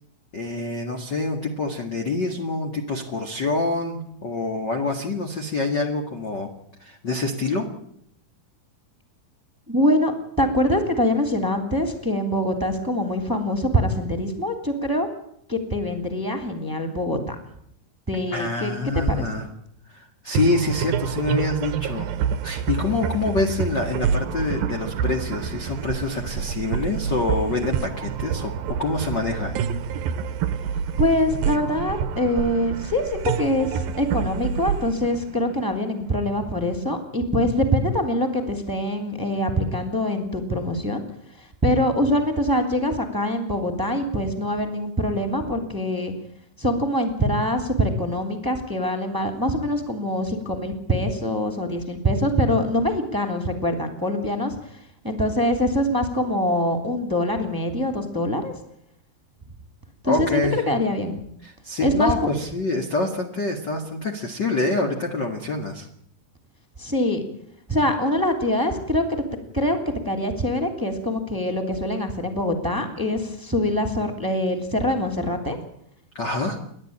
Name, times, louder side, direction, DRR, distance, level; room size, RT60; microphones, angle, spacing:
voice 1, 0.3-6.5 6.8-7.7 18.3-19.5 19.9-22.1 22.4-29.5 60.0-60.7 61.4-65.9 76.1-76.6, left 2 dB, 35° left, 3 dB, 1.9 m, -26 dB
voice 2, 9.7-10.1 10.4-15.1 15.5-17.3 18.1-18.7 19.1-19.2 31.0-41.0 41.4-46.1 46.6-54.6 55.0-58.5 60.0-61.2 61.8-62.3 66.8-67.2 67.7-69.2 69.5-69.8 70.0-75.6, left 1 dB, 5° right, 4 dB, 2.5 m, -24 dB
sound 1, 20.3-36.0, right 7 dB, 70° right, 2.6 m, -27 dB
30.0 x 12.0 x 8.8 m, 0.70 s
omnidirectional pair, 4.7 m